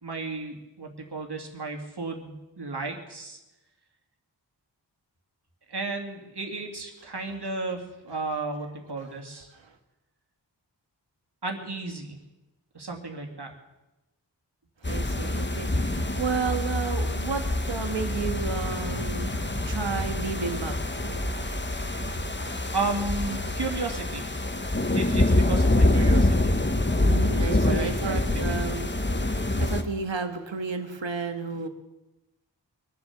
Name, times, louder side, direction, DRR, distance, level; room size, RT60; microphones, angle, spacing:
voice 1, 0.0-3.4 5.7-9.5 11.4-12.2 12.7-13.5 22.7-24.5 24.9-26.6 27.5-28.7, right 3 dB, 65° right, 3 dB, 2.7 m, -34 dB
sound 1, 14.8-29.8, left 2 dB, 25° left, 1.3 m, -26 dB
voice 2, 14.8-21.9 27.0-31.7, right 5 dB, 85° right, 7 dB, 1.6 m, -33 dB
sound 2, 16.0-23.8, right 3 dB, 45° right, 1.4 m, -41 dB
23.5 x 7.9 x 7.3 m, 1.0 s
wide cardioid pair, 60°, 44 cm